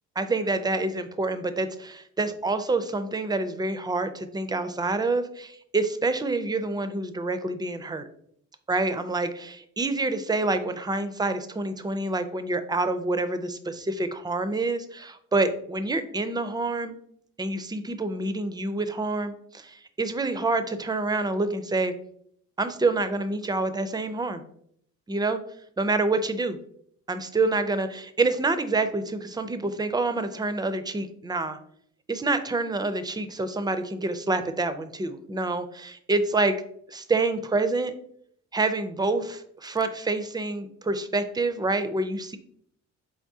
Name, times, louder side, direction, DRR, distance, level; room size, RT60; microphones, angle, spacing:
voice 1, 0.2-8.0 8.7-17.0 17.4-21.9 22.6-24.4 25.1-25.4 25.8-26.6 27.1-31.6 32.1-36.6 36.9-37.9 38.5-42.4, right 3 dB, 15° right, 10 dB, 0.4 m, -27 dB
4.4 x 3.5 x 2.7 m, 0.67 s
cardioid pair, 90°, 30 cm